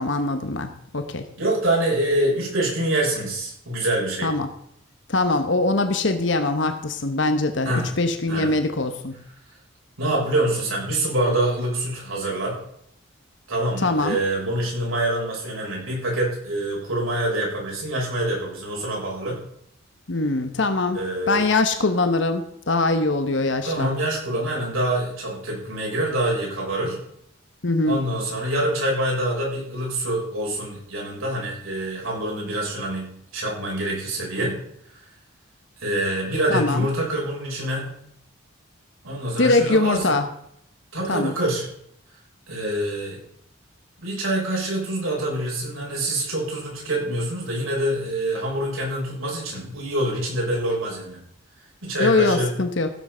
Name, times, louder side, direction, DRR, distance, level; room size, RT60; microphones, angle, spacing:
voice 1, 0.0-1.3 4.2-4.5 5.1-9.2 13.8-14.2 20.1-21.0 21.3-23.9 27.6-28.0 36.5-36.8 39.4-40.3 41.1-41.3 52.0-52.9, left 2 dB, 60° left, 8 dB, 1.0 m, -22 dB
voice 2, 1.4-4.3 7.6-7.9 8.3-8.5 10.0-12.6 13.5-19.4 20.9-21.5 23.6-27.0 27.9-34.6 35.8-37.9 39.0-40.1 40.9-41.7 42.5-43.2 44.0-51.2 51.8-52.5, right 1 dB, 85° right, -3 dB, 6.3 m, -25 dB
15.5 x 7.5 x 5.6 m, 0.70 s
head